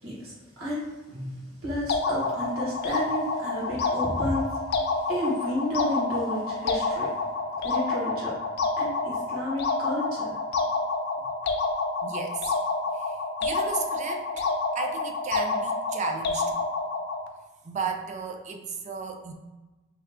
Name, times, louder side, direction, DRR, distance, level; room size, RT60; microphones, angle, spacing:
voice 1, 0.0-4.5 5.1-7.1 7.6-8.3 8.8-10.4, left 1 dB, 85° right, -5 dB, 1.4 m, -32 dB
sound 1, 1.9-17.3, left 3 dB, 50° left, 0.4 m, -28 dB
voice 2, 12.0-12.5 12.9-14.5 14.7-16.6 17.6-19.3, right 5 dB, 35° right, 4 dB, 0.4 m, -34 dB
3.2 x 2.3 x 3.5 m, 1.1 s
head